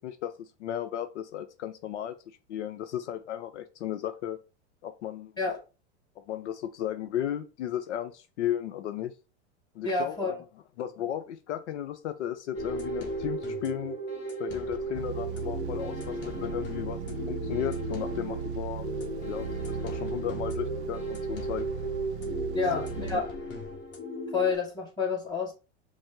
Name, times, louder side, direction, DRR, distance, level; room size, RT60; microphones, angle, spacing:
voice 1, 0.0-4.4 4.8-5.3 6.3-9.1 9.7-10.2 10.8-14.0 14.4-18.9 19.2-21.7 22.7-23.2, left 11 dB, 80° left, 0.6 m, -35 dB
voice 2, 9.8-10.4 22.5-23.3 24.3-25.5, left 4 dB, 10° left, 1.9 m, -29 dB
sound 1, 12.5-24.5, right 1 dB, 30° left, 1.2 m, -35 dB
sound 2, 14.9-23.2, right 9 dB, 70° right, 0.5 m, -37 dB
5.1 x 2.0 x 3.6 m
hypercardioid pair, 110°, 35 cm